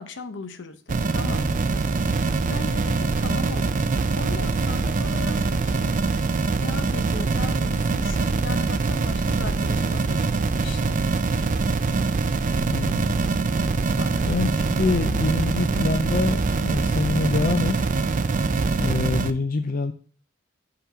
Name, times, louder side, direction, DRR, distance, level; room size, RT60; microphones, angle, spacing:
voice 1, 0.0-1.6 2.1-3.9 4.2-11.0 13.9-14.3, left 3 dB, 65° left, 10 dB, 0.8 m, -38 dB
sound 1, 0.9-19.3, right 3 dB, 40° right, 0.5 m, -23 dB
voice 2, 12.7-13.2 14.3-17.9 18.8-19.9, left 3 dB, 45° left, 7 dB, 0.4 m, -25 dB
5.9 x 5.7 x 4.8 m, 0.41 s
head